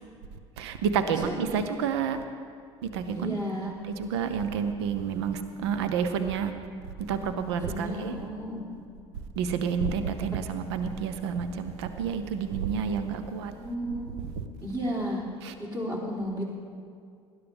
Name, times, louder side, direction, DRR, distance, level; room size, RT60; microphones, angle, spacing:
voice 1, 0.6-2.2 2.8-3.4 3.8-6.5 7.1-8.1 9.4-13.5 15.4-15.5, right 6 dB, 70° right, 9 dB, 0.8 m, -29 dB
voice 2, 1.1-1.6 3.1-3.7 7.7-8.6 13.1-13.2 13.5-14.1 14.6-15.2 15.6-16.4, equal, 30° right, -3 dB, 3.6 m, -33 dB
19.5 x 11.0 x 3.5 m, 2.3 s
figure-of-eight pair, 60°, 15 cm